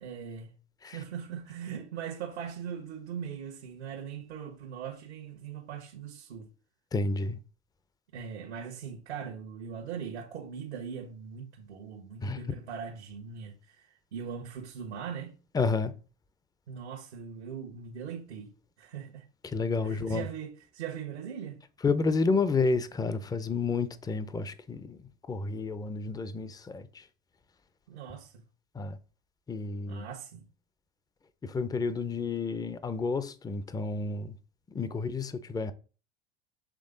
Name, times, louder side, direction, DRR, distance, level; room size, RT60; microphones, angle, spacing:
voice 1, 0.0-0.6 0.8-6.5 8.1-15.4 16.7-19.2 19.8-21.6 27.9-28.3 29.9-30.5, right 7 dB, 85° right, 1.3 m, -40 dB
voice 2, 6.9-7.4 12.2-12.5 15.5-15.9 19.4-20.3 21.8-27.1 28.7-29.0 29.5-30.1 31.4-34.4 34.7-35.7, left 4 dB, 10° left, 0.6 m, -30 dB
7.6 x 3.4 x 3.9 m
hypercardioid pair, 95°, 32 cm